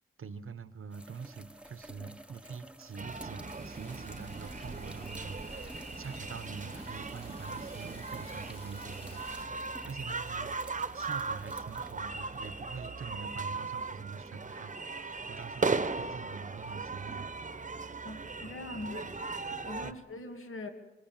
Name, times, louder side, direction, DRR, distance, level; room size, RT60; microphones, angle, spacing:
voice 1, 0.2-17.3 19.8-20.0, right 5 dB, 85° right, 13 dB, 1.1 m, -45 dB
sound 1, 0.9-12.7 14.3-14.4 19.2-19.3, right 1 dB, 5° right, 1.2 m, -53 dB
sound 2, 3.0-19.9, right 4 dB, 35° right, 1.0 m, -38 dB
sound 3, 3.5-9.5, left 1 dB, 25° left, 3.2 m, -51 dB
voice 2, 18.0-19.1 19.6-20.7, left 2 dB, 80° left, 4 dB, 2.5 m, -42 dB
25.5 x 21.5 x 7.4 m, 1.1 s
wide cardioid pair, 110°, 21 cm